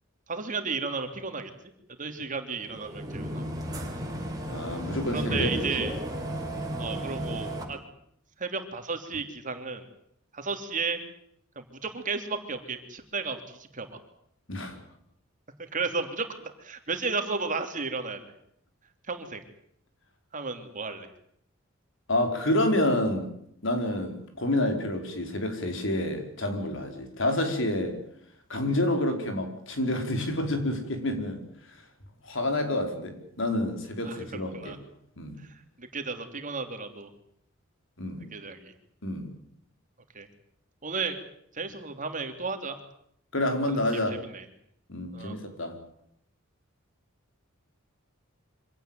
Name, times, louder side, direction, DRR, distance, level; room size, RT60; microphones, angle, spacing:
voice 1, 0.3-1.5 2.0-3.5 5.1-5.9 6.8-7.8 8.4-9.8 10.3-11.0 11.5-14.0 15.7-16.3 16.6-18.2 19.1-19.4 20.3-21.1 34.1-34.8 35.4-37.1 38.3-38.7 40.1-40.3 40.8-41.2 41.5-42.8 43.7-43.8 44.1-44.4 45.1-45.3, right 4 dB, 40° right, 7 dB, 3.2 m, -33 dB
sound 1, 2.6-7.6, equal, 20° right, 5.9 m, -33 dB
voice 2, 4.5-5.9 14.5-14.8 22.1-23.3 23.6-28.0 28.5-31.8 32.2-34.8 35.2-35.4 38.0-38.2 39.0-39.3 43.3-44.2 44.9-45.8, left 1 dB, 65° left, 5 dB, 5.1 m, -28 dB
25.5 x 17.5 x 9.3 m, 0.71 s
head